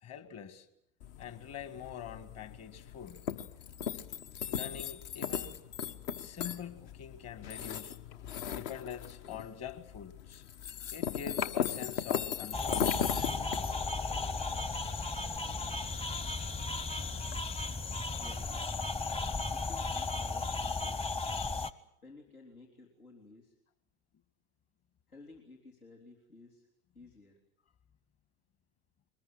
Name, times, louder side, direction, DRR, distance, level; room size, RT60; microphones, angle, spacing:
voice 1, 0.0-0.7 1.2-3.2 4.5-5.6 6.2-8.0 8.5-10.4 10.9-13.0, left 8 dB, 35° left, 11 dB, 2.1 m, -44 dB
sound 1, 1.0-17.4, left 8 dB, 55° left, 1.4 m, -38 dB
sound 2, 12.5-21.7, left 3 dB, 15° left, 1.0 m, -35 dB
voice 2, 18.2-18.6 19.5-21.0 22.0-23.5 25.1-26.7 26.9-27.4, left 3 dB, 80° left, -1 dB, 3.7 m, -55 dB
23.5 x 20.0 x 8.9 m, 0.81 s
figure-of-eight pair, 75°, 43 cm